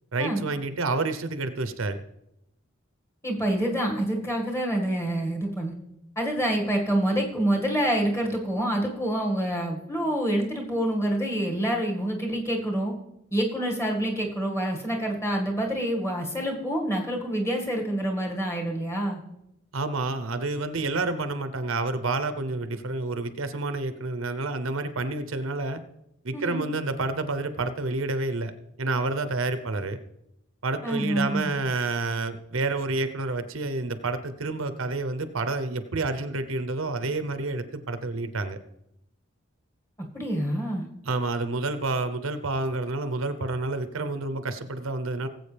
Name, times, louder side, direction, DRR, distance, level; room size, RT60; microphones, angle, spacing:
voice 1, 0.1-2.0 19.7-25.8 26.2-28.5 28.8-30.0 30.6-38.6 41.0-45.3, right 3 dB, 75° right, 11 dB, 0.8 m, -29 dB
voice 2, 3.2-5.7 6.2-12.9 13.3-19.2 26.3-26.6 30.8-31.5 40.0-40.9, right 1 dB, 15° left, 0 dB, 1.9 m, -27 dB
19.0 x 8.0 x 3.4 m, 0.83 s
head